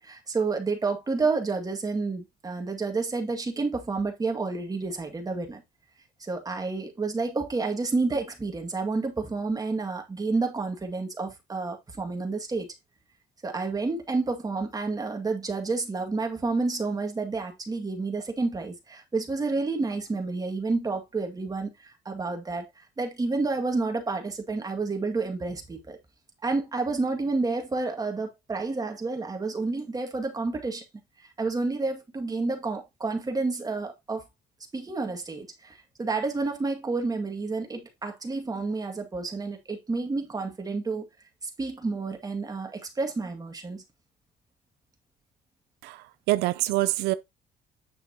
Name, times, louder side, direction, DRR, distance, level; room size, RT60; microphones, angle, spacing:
voice 1, 0.0-5.6 6.2-12.7 13.4-22.7 23.0-26.0 26.4-30.8 31.2-34.3 34.7-41.1 41.6-43.8, right 3 dB, 20° right, 2.1 m, -30 dB
voice 2, 45.8-47.1, right 17 dB, 90° right, 0.5 m, -26 dB
8.7 x 6.7 x 2.9 m
cardioid pair, 110°, 17 cm